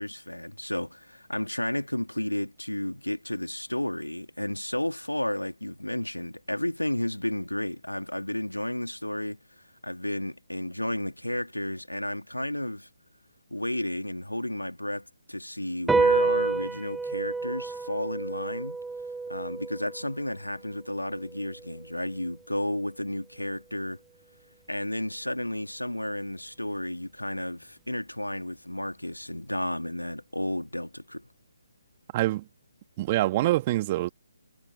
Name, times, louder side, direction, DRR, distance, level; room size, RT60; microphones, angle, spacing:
voice 1, 0.0-12.9 13.5-18.8 19.3-24.0 24.7-31.3, left 1 dB, 90° left, 2.1 m, -32 dB
sound 1, 15.9-22.6, right 4 dB, 5° right, 0.4 m, -30 dB
voice 2, 32.1-32.4 33.0-34.1, right 16 dB, 30° right, 1.5 m, -25 dB
figure-of-eight pair, 140°, 0 cm